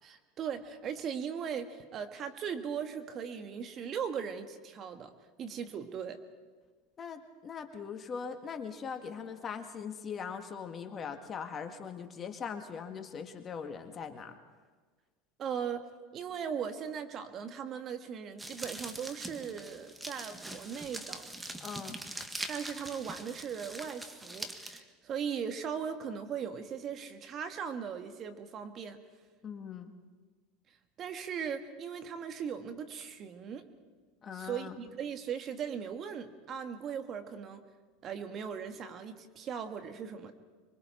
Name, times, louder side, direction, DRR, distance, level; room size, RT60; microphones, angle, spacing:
voice 1, 0.0-5.1 5.4-6.2 15.4-15.9 16.1-21.2 22.5-29.0 31.0-33.7 34.3-37.6 38.0-40.3, right 7 dB, 40° right, 7 dB, 1.7 m, -38 dB
voice 2, 7.0-14.4 21.6-22.0 29.4-29.9 34.2-34.7, left 6 dB, 30° left, 6 dB, 1.8 m, -41 dB
sound 1, 18.4-24.8, right 1 dB, 10° right, 1.6 m, -43 dB
26.0 x 23.5 x 4.5 m, 1.4 s
hypercardioid pair, 90°, 0 cm